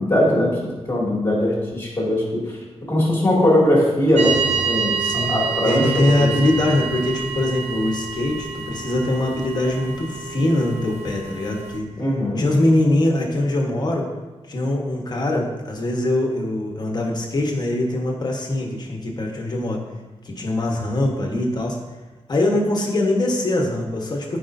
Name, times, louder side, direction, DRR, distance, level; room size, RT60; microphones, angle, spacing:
voice 1, 0.0-6.3 12.0-12.5, left 1 dB, 25° left, -5 dB, 2.4 m, -20 dB
sound 1, 4.2-11.8, right 5 dB, 85° right, 0.9 m, -28 dB
voice 2, 5.0-5.3 5.6-11.9 12.3-14.1 14.5-19.8 20.2-21.8 22.3-24.4, left 1 dB, 40° left, 1 dB, 1.2 m, -22 dB
14.0 x 5.0 x 2.7 m, 1.2 s
wide cardioid pair, 180°, 11 cm